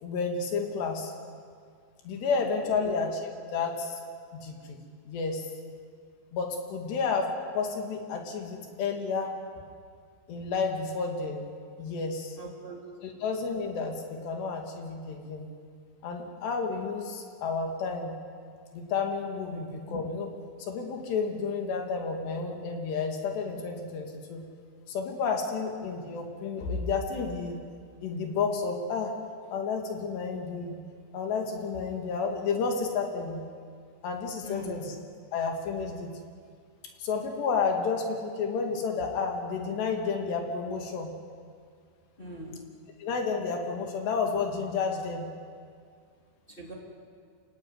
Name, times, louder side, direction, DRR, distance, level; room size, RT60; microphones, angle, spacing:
voice 1, 0.0-1.1 2.1-4.0 4.3-4.8 5.1-5.5 6.3-9.3 10.3-11.5 11.8-12.4 13.0-15.5 16.0-18.1 18.7-20.3 20.7-24.4 24.9-27.6 28.0-29.1 29.5-30.8 31.1-33.4 34.0-34.9 35.3-36.2 37.0-41.1 43.0-45.3, left 5 dB, 65° left, 3 dB, 4.2 m, -31 dB
voice 2, 12.4-12.8 19.5-19.6 34.4-34.8 42.2-42.6 46.6-46.7, right 1 dB, 15° left, -2 dB, 1.9 m, -41 dB
26.0 x 16.0 x 9.7 m, 2.1 s
omnidirectional pair, 5.6 m